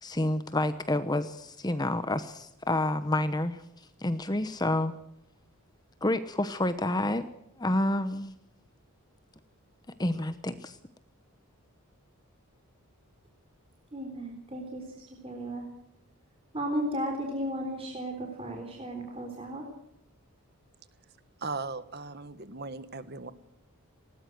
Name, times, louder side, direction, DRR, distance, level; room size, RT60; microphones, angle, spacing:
voice 1, 0.0-5.0 6.0-7.3 7.6-8.3 10.0-10.8, left 1 dB, 20° left, 11 dB, 0.9 m, -29 dB
voice 2, 13.9-15.7 16.5-19.7, equal, 25° right, 2 dB, 3.7 m, -35 dB
voice 3, 21.4-23.3, right 3 dB, 45° right, 13 dB, 1.5 m, -37 dB
20.0 x 19.0 x 7.7 m, 0.79 s
head